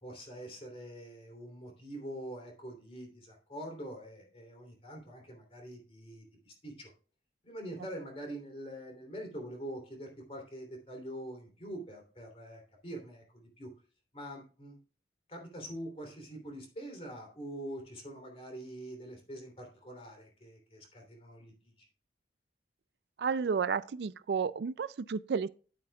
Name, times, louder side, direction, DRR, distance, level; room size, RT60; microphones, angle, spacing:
voice 1, 0.0-6.9 7.4-13.2 13.6-13.7 14.1-14.8 15.3-21.5 21.8-21.9, right 1 dB, 35° left, 3.0 m, -44 dB
voice 2, 23.2-25.5, right 5 dB, 65° right, 0.4 m, -32 dB
10.5 x 8.4 x 2.3 m
head